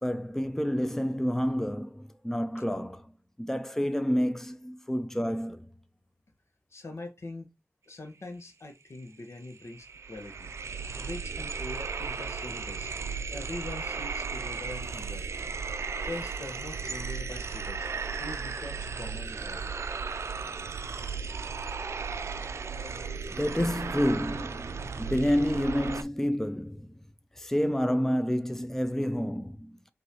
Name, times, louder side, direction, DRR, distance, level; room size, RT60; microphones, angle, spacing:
voice 1, 0.0-3.1 3.4-5.7 23.4-27.0 27.4-29.8, equal, 10° left, 0.5 m, -29 dB
voice 2, 6.7-7.5 7.9-10.5 11.0-12.9 13.3-15.3 16.1-17.9 18.2-19.7, left 2 dB, 75° left, 1.0 m, -42 dB
sound 1, 9.0-9.1 9.4-26.0, right 5 dB, 85° right, 0.4 m, -35 dB
5.8 x 2.7 x 2.9 m
cardioid pair, 50°, 5 cm